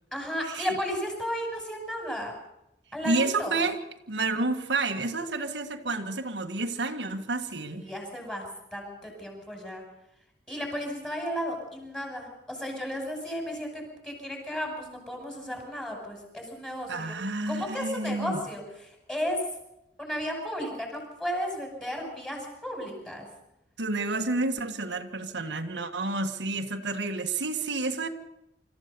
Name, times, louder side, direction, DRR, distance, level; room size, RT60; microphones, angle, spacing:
voice 1, 0.1-2.4 2.9-3.6 7.7-8.5 8.7-9.8 10.5-17.1 17.5-19.4 20.0-23.3, equal, 5° left, 2 dB, 6.1 m, -34 dB
voice 2, 3.0-3.8 4.1-7.8 16.9-18.4 23.8-28.1, right 3 dB, 90° right, 5 dB, 1.7 m, -30 dB
25.5 x 14.5 x 6.9 m, 0.90 s
head